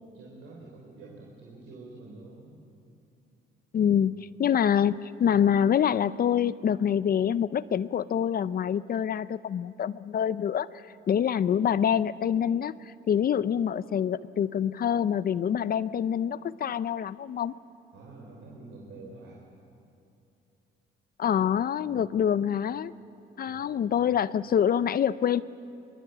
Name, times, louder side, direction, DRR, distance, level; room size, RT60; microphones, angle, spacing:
voice 1, 0.1-2.6 3.9-4.2 17.9-19.4 21.8-22.1 23.5-24.0, right 3 dB, 85° right, -2 dB, 3.7 m, -48 dB
voice 2, 3.7-17.5 21.2-22.9 23.4-25.4, left 9 dB, 50° left, 17 dB, 0.6 m, -26 dB
22.0 x 22.0 x 8.0 m, 2.7 s
cardioid pair, 90°, 20 cm